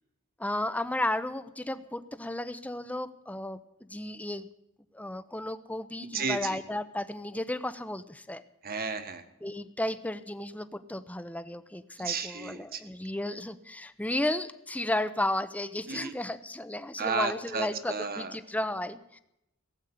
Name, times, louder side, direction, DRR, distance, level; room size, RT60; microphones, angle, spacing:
voice 1, 0.4-3.6 3.9-4.5 4.9-8.4 9.4-19.2, left 1 dB, 5° left, 12 dB, 0.7 m, -33 dB
voice 2, 6.0-6.6 8.6-9.2 12.0-12.8 15.9-16.1 17.0-18.3, right 5 dB, 45° right, 9 dB, 1.5 m, -33 dB
17.5 x 8.2 x 9.9 m, 0.83 s
head